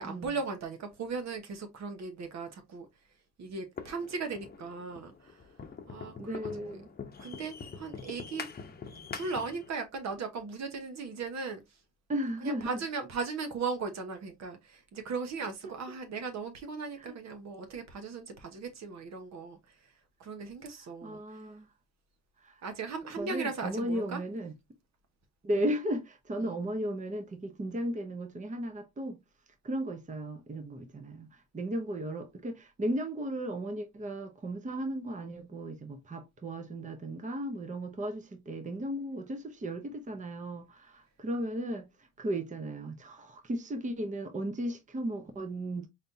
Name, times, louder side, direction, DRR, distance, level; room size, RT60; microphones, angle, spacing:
voice 1, 0.0-2.9 3.4-5.4 5.9-6.8 7.2-8.5 9.1-11.6 12.4-19.9 20.2-21.4 22.6-24.2 25.5-25.6 26.4-26.6, right 4 dB, 65° right, 1.2 m, -38 dB
sound 1, 3.8-9.7, left 5 dB, 30° left, 0.8 m, -44 dB
voice 2, 6.2-6.9 12.1-12.7 15.6-15.7 17.0-17.1 21.0-21.7 22.4-22.6 23.2-24.5 25.4-29.2 29.6-41.9 42.2-45.9, right 1 dB, 25° right, 0.8 m, -35 dB
4.2 x 3.3 x 2.7 m
cardioid pair, 90°, 30 cm